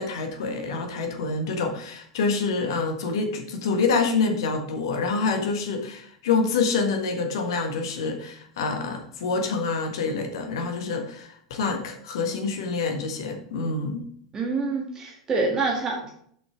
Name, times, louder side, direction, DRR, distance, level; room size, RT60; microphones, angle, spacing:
voice 1, 0.0-14.1, left 4 dB, 60° left, 4 dB, 1.6 m, -27 dB
voice 2, 14.3-16.1, right 3 dB, 25° right, -1 dB, 1.7 m, -26 dB
7.3 x 6.1 x 5.0 m, 0.62 s
figure-of-eight pair, 85°, 3 cm